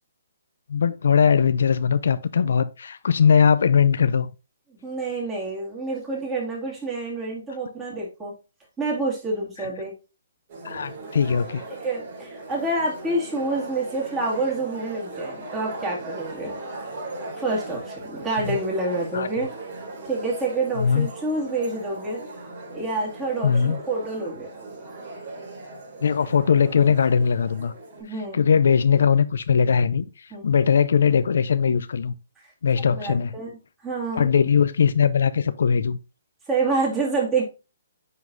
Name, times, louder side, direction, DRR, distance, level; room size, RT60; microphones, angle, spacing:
voice 1, 0.7-4.3 10.6-11.6 18.5-18.6 19.1-19.3 20.8-21.1 23.4-23.8 26.0-27.7 28.3-32.1 32.6-33.4 34.1-36.0, left 6 dB, 70° left, 0.5 m, -20 dB
voice 2, 4.7-8.3 8.8-9.9 11.8-16.6 17.3-19.5 20.0-22.2 22.7-24.5 28.0-28.4 30.3-30.4 32.4-32.5 32.8-33.5 33.8-34.3 36.5-37.4, right 3 dB, 10° right, 2.4 m, -27 dB
sound 1, 10.5-28.0, right 2 dB, 40° right, 2.6 m, -38 dB
9.5 x 3.9 x 2.7 m
hypercardioid pair, 160°, 0 cm